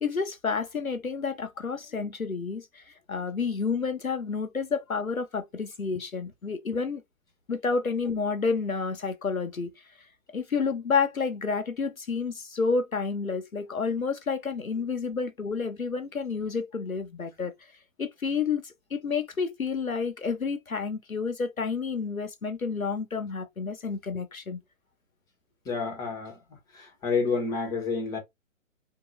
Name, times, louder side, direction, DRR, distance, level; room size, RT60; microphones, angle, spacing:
voice 1, 0.0-7.0 7.5-9.7 10.3-17.7 18.0-24.6, left 5 dB, 85° left, 1.0 m, -30 dB
voice 2, 25.6-26.4 26.7-28.2, left 4 dB, 10° left, 1.0 m, -29 dB
3.8 x 2.7 x 3.0 m
figure-of-eight pair, 125°, 41 cm